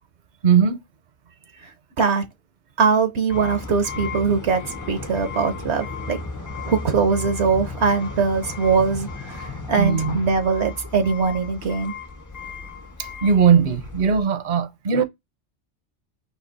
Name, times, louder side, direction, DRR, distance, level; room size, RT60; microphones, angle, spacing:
voice 1, 0.4-0.8 9.8-10.2 13.0-15.0, right 7 dB, 50° right, 0.7 m, -19 dB
voice 2, 2.8-4.6 4.9-6.2 6.7-11.9, right 5 dB, 75° right, 1.1 m, -21 dB
sound 1, 3.3-14.2, left 3 dB, 25° left, 0.4 m, -34 dB
4.3 x 2.7 x 3.9 m
omnidirectional pair, 1.2 m